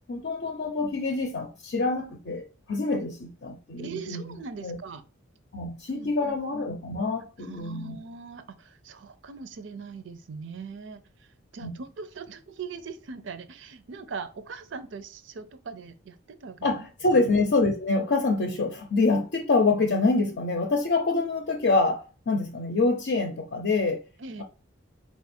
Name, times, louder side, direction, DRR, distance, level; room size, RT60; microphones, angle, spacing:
voice 1, 0.1-4.4 4.6-4.8 5.5-8.0 11.6-11.7 16.6-24.0, left 3 dB, 55° left, 0.6 m, -26 dB
voice 2, 3.8-5.0 5.9-6.4 7.4-16.9 17.1-17.3 24.2-24.4, right 5 dB, 60° right, 0.5 m, -41 dB
4.3 x 2.4 x 4.2 m
head